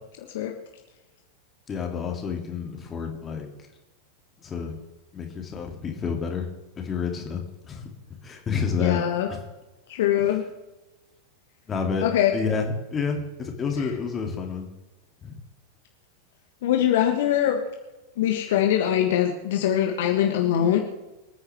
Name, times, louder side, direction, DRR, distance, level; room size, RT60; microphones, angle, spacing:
voice 1, 1.7-3.5 4.4-4.7 5.1-6.5 6.8-7.9 8.2-9.0 9.3-9.5 11.7-12.1 12.3-14.7 15.2-15.4, left 5 dB, 20° left, 3 dB, 2.8 m, -29 dB
voice 2, 8.8-9.3 9.9-10.4 12.0-12.3 16.6-17.6 18.2-20.8, left 11 dB, 55° left, 3 dB, 1.5 m, -22 dB
26.0 x 9.8 x 3.6 m, 1.1 s
figure-of-eight pair, 90°, 0 cm